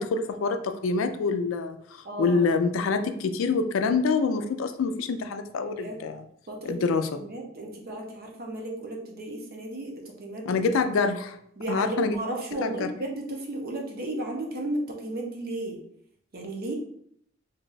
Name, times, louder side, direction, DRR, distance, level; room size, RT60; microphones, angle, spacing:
voice 1, 0.0-1.8 2.2-6.2 6.6-7.1 10.5-11.4 11.7-12.2 12.6-12.9, left 4 dB, 75° left, 7 dB, 0.3 m, -26 dB
voice 2, 2.0-2.5 5.8-6.0 6.5-6.8 7.2-9.9 10.2-10.7 11.6-15.8 16.3-16.7, right 2 dB, 50° right, 1 dB, 0.7 m, -34 dB
2.6 x 2.3 x 3.9 m, 0.69 s
head